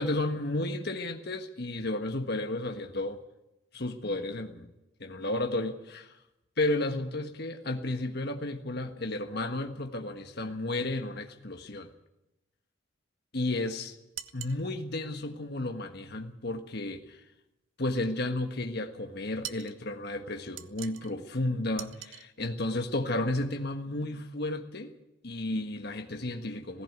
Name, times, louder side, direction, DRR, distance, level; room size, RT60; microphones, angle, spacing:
voice 1, 0.0-3.2 3.7-4.7 5.0-6.1 6.6-11.9 13.3-14.0 14.3-17.2 17.8-24.9 25.2-26.8, left 2 dB, 55° left, 5 dB, 1.5 m, -32 dB
sound 1, 14.1-14.6 19.4-19.8 20.6-21.1 21.8-22.3, right 11 dB, 80° right, 0.9 m, -42 dB
17.5 x 16.0 x 9.6 m, 0.92 s
head